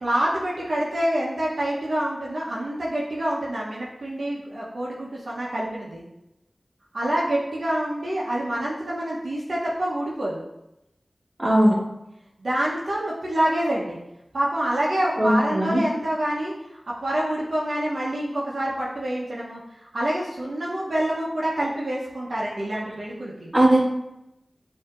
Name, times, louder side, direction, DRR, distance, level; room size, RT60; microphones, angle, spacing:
voice 1, 0.0-6.0 6.9-10.4 12.4-14.0 14.3-23.5, right 1 dB, 75° right, -5 dB, 0.8 m, -27 dB
voice 2, 11.4-11.7 15.2-15.8 23.5-23.8, right 1 dB, 30° right, -4 dB, 1.5 m, -18 dB
7.1 x 2.8 x 2.5 m, 0.89 s
cardioid pair, 40°, 0 cm